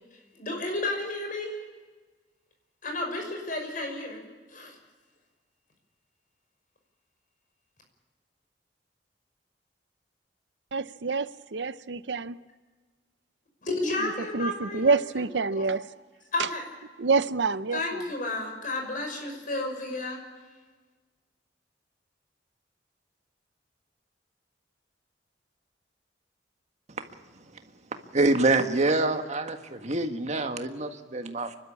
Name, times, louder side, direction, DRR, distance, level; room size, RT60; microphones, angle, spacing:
voice 1, 0.1-1.5 2.8-4.2 4.5-4.8 13.6-15.3 15.5-15.7 16.3-16.7 17.7-20.2, left 2 dB, 50° left, 5.8 m, -32 dB
voice 2, 10.7-12.4 14.3-15.8 17.0-18.0, right 4 dB, 80° right, 0.7 m, -27 dB
voice 3, 28.1-31.6, right 2 dB, 40° right, 1.7 m, -26 dB
29.5 x 12.5 x 8.6 m
head